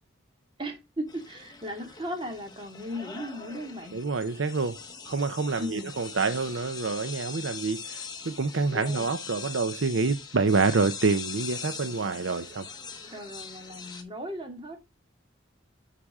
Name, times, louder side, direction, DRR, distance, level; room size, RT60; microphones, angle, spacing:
voice 1, 0.6-4.0 5.6-5.9 8.7-9.1 13.1-14.8, equal, 25° right, 2.3 m, -37 dB
sound 1, 1.1-14.0, left 5 dB, 20° left, 1.2 m, -42 dB
voice 2, 3.9-4.8 5.1-12.6, right 4 dB, 80° right, 0.7 m, -27 dB
9.8 x 5.9 x 3.6 m
head